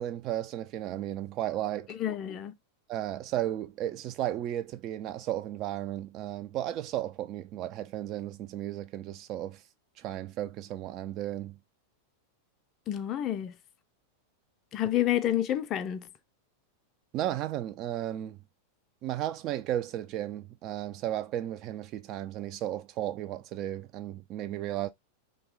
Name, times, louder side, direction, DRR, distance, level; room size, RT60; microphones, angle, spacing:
voice 1, 0.0-2.0 2.9-9.6 10.0-11.6 17.1-18.4 19.0-24.9, right 12 dB, 35° right, 0.3 m, -34 dB
voice 2, 1.9-2.5 12.9-13.5 14.7-16.1, left 12 dB, 35° left, 0.4 m, -29 dB
2.9 x 2.2 x 3.4 m
figure-of-eight pair, 90°, 0 cm